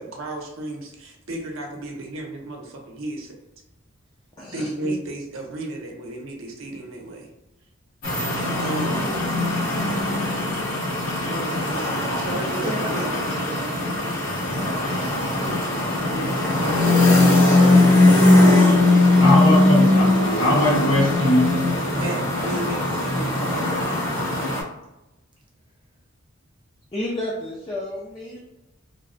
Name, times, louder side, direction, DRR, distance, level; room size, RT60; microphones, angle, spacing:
voice 1, 0.0-3.3 4.5-7.3 8.6-9.3 11.3-13.2 16.0-16.4 18.8-19.7 21.9-23.6, right 2 dB, 75° right, 0 dB, 0.6 m, -33 dB
voice 2, 4.4-4.9 26.9-28.4, left 1 dB, 25° left, -4 dB, 0.4 m, -32 dB
sound 1, 8.0-24.6, left 2 dB, 85° left, 1.1 m, -20 dB
voice 3, 12.2-15.1 15.8-18.4 22.0-22.5, right 1 dB, 25° right, -1 dB, 0.7 m, -36 dB
voice 4, 19.2-21.6, left 1 dB, 70° left, -5 dB, 1.5 m, -20 dB
3.3 x 2.0 x 2.5 m, 0.97 s
head